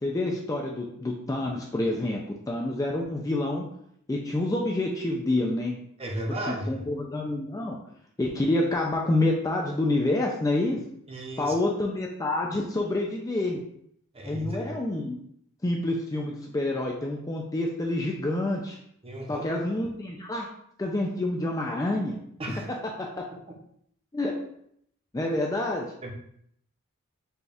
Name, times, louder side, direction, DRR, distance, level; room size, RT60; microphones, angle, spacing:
voice 1, 0.0-2.2 2.5-3.6 4.1-5.7 6.5-7.8 8.2-10.8 11.4-13.6 14.2-15.2 15.6-18.8 19.3-20.5 20.8-22.2 23.0-23.1 24.1-24.3 25.1-25.9, left 2 dB, 15° left, 0 dB, 0.3 m, -27 dB
voice 2, 6.0-6.8 11.1-11.5 14.1-14.7 19.0-19.5 22.4-22.7 26.0-26.1, right 1 dB, 25° right, 0 dB, 0.6 m, -34 dB
4.1 x 2.3 x 3.4 m, 0.69 s
head